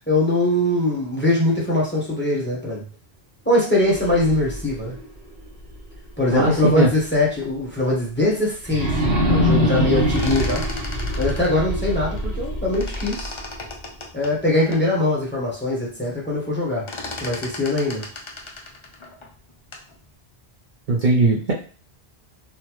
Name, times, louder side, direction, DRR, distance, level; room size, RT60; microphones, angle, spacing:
voice 1, 0.1-2.8 3.4-4.9 6.2-9.0 9.3-10.6 11.2-13.3 14.1-16.8 17.2-18.0, left 1 dB, 10° left, -4 dB, 1.0 m, -22 dB
sound 1, 3.7-6.7 7.1-7.2 8.6-13.7, equal, 40° right, 1.1 m, -24 dB
voice 2, 6.3-6.9 20.9-21.5, right 2 dB, 55° right, -3 dB, 0.7 m, -18 dB
sound 2, 9.9-12.5 12.7-14.9 15.4-15.5 15.7-16.1 16.4-19.9, left 3 dB, 40° left, 0.4 m, -36 dB
3.9 x 2.1 x 3.0 m, 0.39 s
omnidirectional pair, 1.1 m